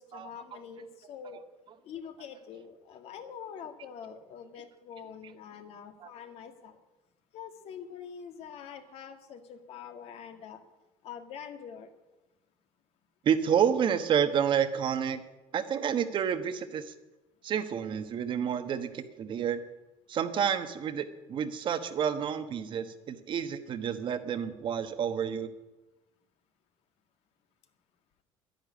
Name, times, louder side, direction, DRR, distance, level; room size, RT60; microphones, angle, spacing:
voice 1, 0.0-1.4 1.8-6.8 7.3-10.6 11.0-11.9, left 7 dB, 60° left, 7 dB, 1.8 m, -45 dB
voice 2, 13.2-15.2 15.5-16.9 17.4-19.6 20.1-25.5, right 8 dB, 45° right, 10 dB, 1.2 m, -29 dB
11.0 x 10.5 x 9.6 m, 1.1 s
cardioid pair, 130°, 12 cm